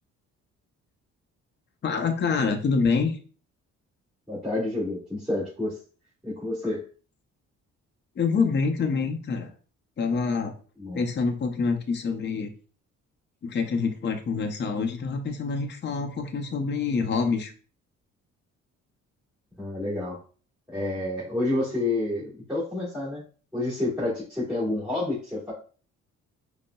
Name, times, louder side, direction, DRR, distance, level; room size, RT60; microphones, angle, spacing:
voice 1, 1.8-3.2 8.2-9.5 10.0-10.5 10.9-12.5 13.4-17.5, left 5 dB, 35° left, 4 dB, 0.6 m, -26 dB
voice 2, 4.3-5.8 6.2-6.8 10.8-11.0 19.6-20.2 20.7-23.2 23.5-25.5, left 2 dB, ahead, -8 dB, 1.6 m, -29 dB
5.1 x 2.1 x 2.2 m, 0.39 s
cardioid pair, 90°, 30 cm